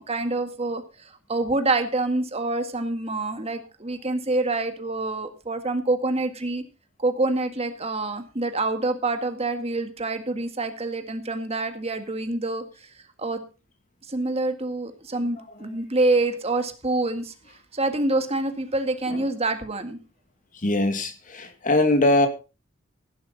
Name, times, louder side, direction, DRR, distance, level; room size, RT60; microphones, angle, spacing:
voice 1, 0.0-6.6 7.0-12.9 13.2-13.4 14.1-17.3 17.7-20.0, right 2 dB, 30° right, 7 dB, 1.8 m, -26 dB
voice 2, 20.5-22.3, left 2 dB, 40° left, 7 dB, 2.3 m, -22 dB
16.0 x 11.0 x 4.0 m, 0.31 s
head